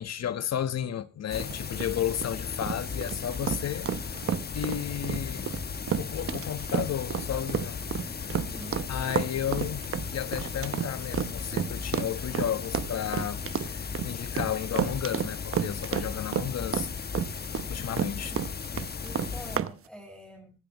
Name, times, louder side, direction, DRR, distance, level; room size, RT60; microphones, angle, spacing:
voice 1, 0.0-3.9 4.5-5.6 6.0-8.1 8.9-9.9 10.1-16.9 17.7-18.3, left 10 dB, 60° left, 1.4 m, -33 dB
sound 1, 1.3-19.6, left 5 dB, 30° left, 1.1 m, -36 dB
sound 2, 1.3-19.7, right 9 dB, 45° right, 0.9 m, -31 dB
voice 2, 8.4-8.8 17.8-17.9 18.3-18.4 19.0-20.5, right 1 dB, ahead, 7.1 m, -46 dB
24.5 x 12.0 x 3.1 m
cardioid pair, 90°, 30 cm